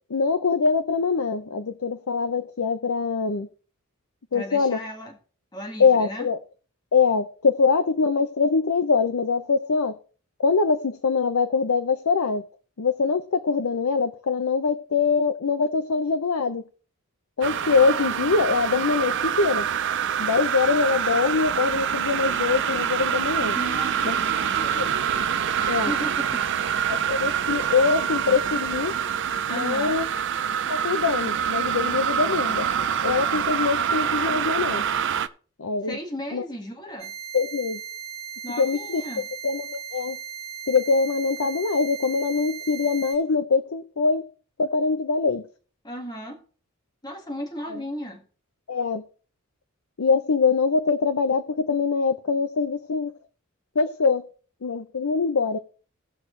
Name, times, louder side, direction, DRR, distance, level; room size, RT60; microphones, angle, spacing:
voice 1, 0.1-3.5 4.3-4.8 5.8-6.4 6.9-10.0 10.4-12.4 12.8-16.6 17.4-19.7 20.2-23.5 24.0-24.2 24.7-24.9 25.7-25.9 26.9-28.9 29.5-30.1 30.7-32.7 33.0-34.8 35.6-36.0 36.3-36.4 37.3-37.8 38.6-39.0 39.4-40.2 40.7-44.2 44.6-45.4 47.7-47.8 48.7-49.0 50.0-53.1 53.8-54.2 54.6-55.6, left 4 dB, 75° left, 0.6 m, -23 dB
voice 2, 4.3-5.2 5.5-6.3 23.5-24.9 25.6-26.5 29.5-30.0 35.8-37.2 38.4-39.3 45.8-46.4 47.0-48.2, equal, 20° left, 1.8 m, -35 dB
sound 1, 17.4-35.3, right 8 dB, 55° right, 0.5 m, -26 dB
sound 2, 37.0-43.1, right 8 dB, 30° right, 3.7 m, -37 dB
17.5 x 6.2 x 3.2 m
head